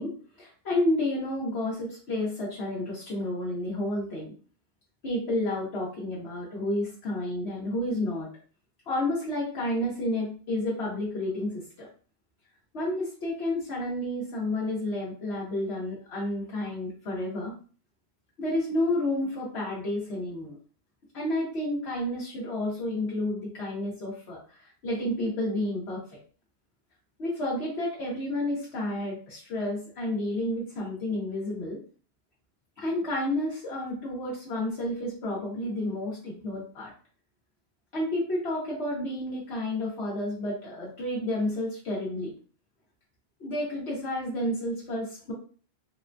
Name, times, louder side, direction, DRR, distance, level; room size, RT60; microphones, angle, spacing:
voice 1, 0.0-4.3 5.0-8.3 8.9-11.9 12.7-17.6 18.4-20.5 21.1-26.2 27.2-31.8 32.8-36.9 37.9-42.3 43.4-45.3, left 1 dB, 85° left, -5 dB, 1.2 m, -30 dB
3.6 x 2.2 x 2.5 m, 0.39 s
omnidirectional pair, 1.1 m